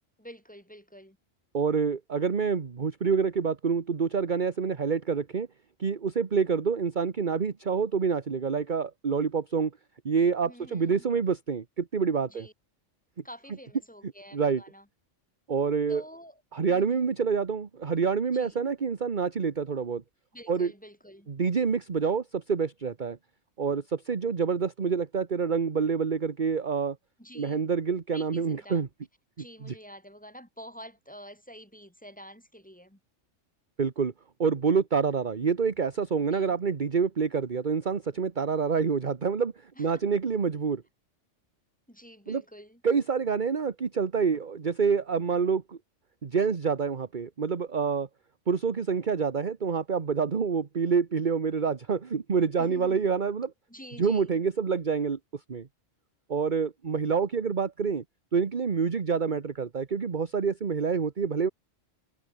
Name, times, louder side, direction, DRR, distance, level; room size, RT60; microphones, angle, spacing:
voice 1, 0.2-1.2 10.4-11.1 12.3-12.5 13.2-14.9 15.9-16.4 16.7-17.1 18.3-18.7 20.3-21.3 27.2-27.7 28.1-28.9 29.4-33.0 36.3-36.6 39.8-40.0 41.9-42.8 52.6-53.1 53.7-54.4, equal, 5° left, 7.8 m, -48 dB
voice 2, 1.5-5.5 5.8-9.7 10.0-12.5 14.3-14.6 15.5-16.0 16.5-20.0 20.5-20.7 21.3-23.2 23.6-27.0 27.3-28.9 29.6-29.7 33.8-34.1 34.4-40.8 42.3-42.4 42.8-45.8 46.2-48.1 48.5-53.5 54.0-55.7 56.3-58.0 58.3-61.5, right 5 dB, 40° right, 1.3 m, -27 dB
omnidirectional pair, 1.3 m